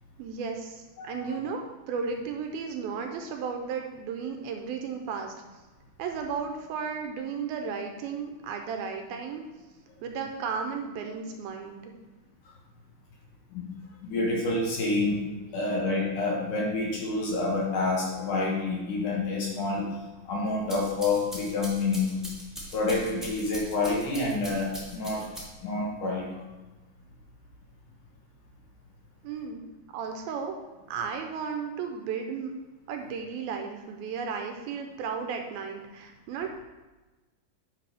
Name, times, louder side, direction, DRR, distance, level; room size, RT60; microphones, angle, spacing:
voice 1, 0.2-5.3 6.0-9.4 10.0-11.9 29.2-29.6 29.9-30.5 30.9-32.5 32.9-36.6, right 6 dB, 80° right, 4 dB, 2.4 m, -34 dB
voice 2, 1.0-1.4 13.5-13.7 14.0-15.2 15.5-19.9 20.3-22.3 22.7-25.3 25.6-26.3, left 3 dB, 65° left, -3 dB, 2.5 m, -28 dB
sound 1, 20.5-25.8, equal, ahead, 1.0 m, -42 dB
10.0 x 5.9 x 3.5 m, 1.2 s
omnidirectional pair, 4.6 m